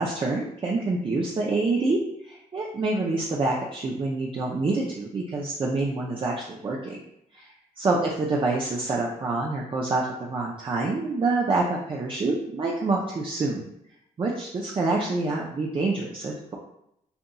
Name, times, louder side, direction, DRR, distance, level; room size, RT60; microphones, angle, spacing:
voice 1, 0.0-2.0 2.2-7.0 7.3-7.5 7.8-13.7 14.2-16.6, right 3 dB, 35° right, -2 dB, 0.6 m, -27 dB
6.9 x 2.6 x 2.3 m, 0.77 s
cardioid pair, 110°, 15 cm